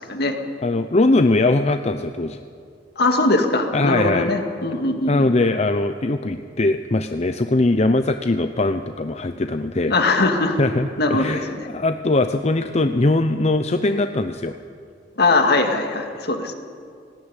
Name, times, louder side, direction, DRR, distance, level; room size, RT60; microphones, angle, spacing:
voice 1, 0.1-0.4 3.0-5.3 9.9-10.6 11.0-11.6 15.2-16.5, left 2 dB, 65° left, 5 dB, 2.2 m, -20 dB
voice 2, 0.6-2.4 3.7-4.3 5.1-9.9 10.6-14.6 16.2-16.3, left 2 dB, 35° left, 8 dB, 0.7 m, -21 dB
18.5 x 17.0 x 9.9 m, 2.3 s
head